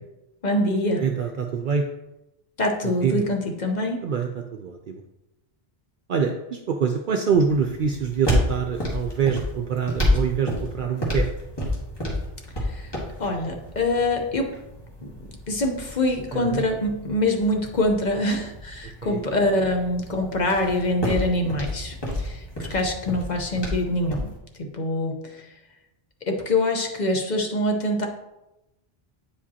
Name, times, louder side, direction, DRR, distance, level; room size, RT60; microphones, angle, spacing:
voice 1, 0.4-1.0 2.6-4.0 12.6-12.9 13.2-14.5 15.0-15.1 15.5-24.3 24.6-25.4 26.3-28.1, left 1 dB, 45° left, 3 dB, 0.9 m, -24 dB
voice 2, 1.0-1.9 2.8-3.2 4.0-5.0 6.1-11.3 16.3-16.6 19.0-19.2 22.6-22.8, right 6 dB, 60° right, 3 dB, 0.6 m, -25 dB
sound 1, 7.3-24.4, left 1 dB, 25° left, 1.6 m, -30 dB
8.5 x 5.0 x 2.8 m, 0.93 s
omnidirectional pair, 1.0 m